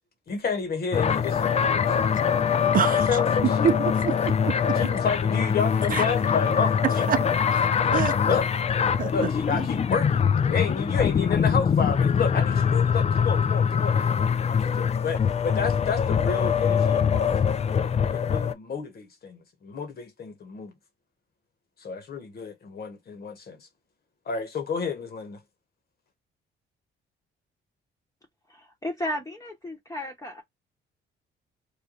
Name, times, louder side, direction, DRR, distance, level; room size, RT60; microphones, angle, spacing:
voice 1, 0.3-2.0 3.1-3.7 4.7-7.1 7.9-8.5 9.1-14.1 14.5-17.6 18.1-20.7 21.8-23.7 24.3-25.4, left 5 dB, 50° left, 1.2 m, -30 dB
sound 1, 0.9-18.5, left 7 dB, 35° left, 0.4 m, -23 dB
voice 2, 2.7-3.1 3.6-4.5 5.9-6.1 7.1-7.2 7.9-8.1 9.0-9.7, right 8 dB, 45° right, 0.6 m, -26 dB
voice 3, 28.5-30.4, left 1 dB, 15° left, 1.0 m, -34 dB
3.3 x 2.2 x 3.8 m
cardioid pair, 90°, 20 cm